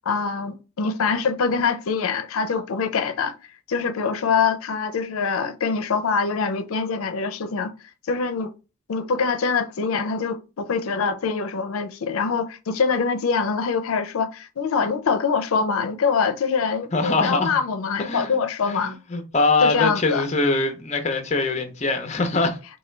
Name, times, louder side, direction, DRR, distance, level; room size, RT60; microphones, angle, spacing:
voice 1, 0.1-3.3 3.7-7.7 8.1-8.5 8.9-19.0 19.6-20.2, left 5 dB, 80° left, 0.5 m, -24 dB
voice 2, 16.9-17.5 18.0-22.6, left 3 dB, 30° left, 0.5 m, -23 dB
4.2 x 2.2 x 3.2 m
head